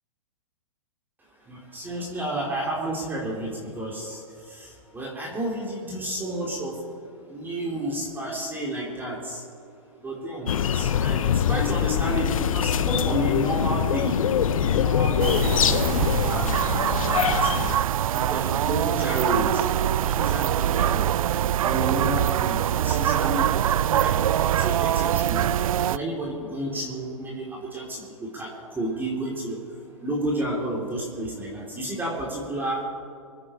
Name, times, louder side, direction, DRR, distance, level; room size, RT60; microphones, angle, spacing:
voice 1, 1.4-6.8 7.3-9.4 10.0-14.2 14.6-16.6 17.2-17.5 18.1-19.7 20.0-21.1 21.6-23.5 23.9-25.5 25.8-32.8, right 1 dB, 10° right, -3 dB, 3.1 m, -31 dB
sound 1, 10.5-17.8, left 8 dB, 70° left, 0.9 m, -23 dB
sound 2, 15.2-26.0, right 11 dB, 75° right, 0.4 m, -24 dB
25.0 x 9.8 x 4.3 m, 2.3 s
hypercardioid pair, 125°, 18 cm